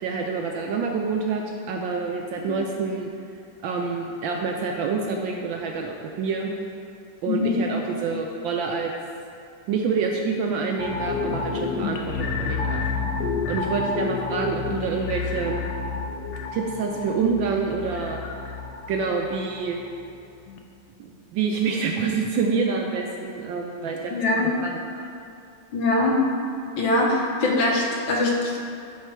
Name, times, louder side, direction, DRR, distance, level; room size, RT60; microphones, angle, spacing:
voice 1, 0.0-3.1 3.6-6.5 7.2-8.9 9.7-12.8 13.5-15.6 16.5-18.2 18.9-19.8 21.0-25.1, right 5 dB, 75° right, 1 dB, 1.2 m, -27 dB
sound 1, 10.8-20.1 20.5-20.6, left 4 dB, 90° left, 0.9 m, -30 dB
voice 2, 24.1-24.5 25.7-26.2 26.8-28.6, left 2 dB, 70° left, -2 dB, 1.7 m, -22 dB
9.8 x 3.7 x 4.5 m, 2.5 s
omnidirectional pair, 2.4 m